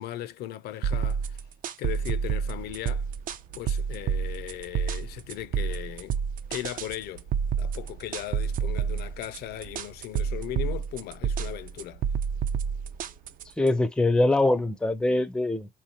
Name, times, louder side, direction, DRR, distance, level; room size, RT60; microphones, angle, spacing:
voice 1, 0.0-1.4 1.8-3.1 3.5-6.2 6.5-7.3 7.6-12.1, left 13 dB, 70° left, 0.4 m, -37 dB
sound 1, 0.8-13.7, right 7 dB, 55° right, 0.5 m, -29 dB
sound 2, 1.9-13.5, right 7 dB, 80° right, 1.1 m, -50 dB
voice 2, 13.6-15.7, left 2 dB, 5° left, 0.4 m, -23 dB
3.6 x 2.9 x 2.7 m
cardioid pair, 110°, 17 cm